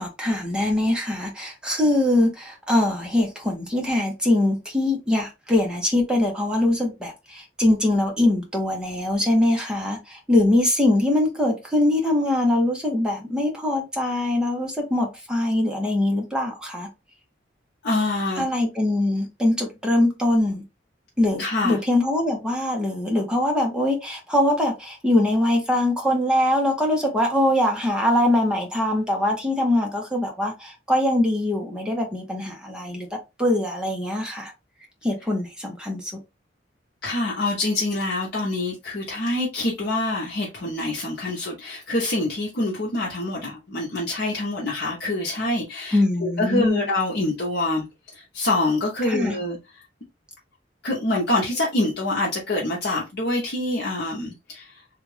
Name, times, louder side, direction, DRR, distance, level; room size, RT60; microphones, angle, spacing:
voice 1, 0.0-16.9 18.4-20.6 21.2-33.1 33.4-34.5 35.0-36.1 45.9-46.8 49.1-49.3, left 1 dB, 5° right, 0.9 m, -22 dB
voice 2, 17.8-18.5 21.4-21.8 37.0-47.9 48.1-49.6 50.8-54.8, left 2 dB, 60° left, 0.9 m, -25 dB
3.3 x 2.5 x 3.2 m
head